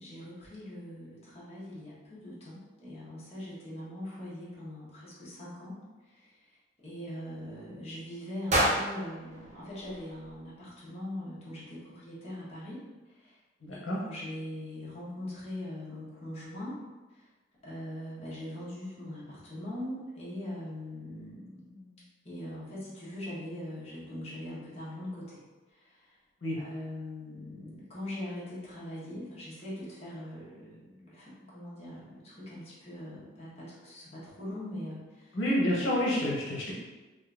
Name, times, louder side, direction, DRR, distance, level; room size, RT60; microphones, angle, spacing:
voice 1, 0.0-6.5 6.8-13.4 13.7-16.8 17.1-17.3 17.6-25.4 25.7-26.1 26.5-35.4, left 1 dB, 35° left, -8 dB, 1.0 m, -42 dB
sound 1, 8.5-10.6, equal, 40° right, 0.6 m, -31 dB
voice 2, 13.6-14.0 26.4-26.6 35.3-36.7, left 1 dB, 85° left, -5 dB, 0.8 m, -29 dB
3.7 x 2.5 x 2.4 m, 1.2 s
head